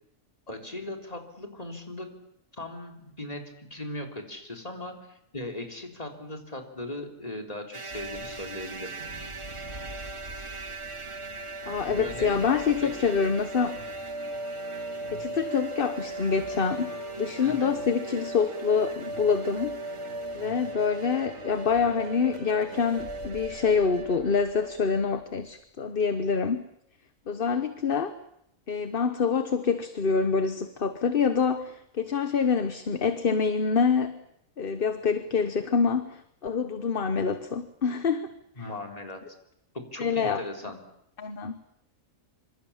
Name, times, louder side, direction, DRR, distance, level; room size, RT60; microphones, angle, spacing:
voice 1, 0.5-2.1 2.5-9.0 11.9-13.2 17.4-17.8 38.6-39.3 39.7-40.8, left 1 dB, 25° left, 3 dB, 3.9 m, -38 dB
sound 1, 7.7-24.8, right 1 dB, 25° right, 1.3 m, -38 dB
sound 2, 7.9-25.5, right 3 dB, 55° right, 3.7 m, -46 dB
voice 2, 11.7-13.8 15.1-19.8 20.3-26.6 27.3-28.1 28.7-34.2 34.6-38.3 38.6-38.7 40.0-40.4 41.2-41.6, left 5 dB, 45° left, 10 dB, 1.2 m, -26 dB
26.5 x 26.0 x 7.3 m, 0.77 s
omnidirectional pair, 1.4 m